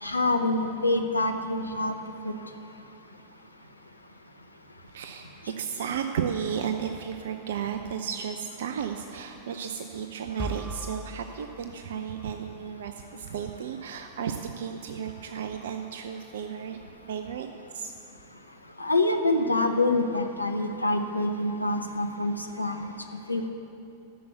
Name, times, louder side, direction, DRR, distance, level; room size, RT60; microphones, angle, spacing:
voice 1, 0.0-2.0 2.2-2.3 18.8-22.9 23.3-23.5, left 2 dB, 85° left, 5 dB, 0.8 m, -26 dB
voice 2, 4.9-16.8 17.1-17.5 17.7-17.9, right 7 dB, 60° right, 7 dB, 0.5 m, -33 dB
sound 1, 10.4-12.4, equal, 5° right, 0.4 m, -40 dB
12.5 x 6.9 x 8.0 m, 2.7 s
figure-of-eight pair, 90°, 0 cm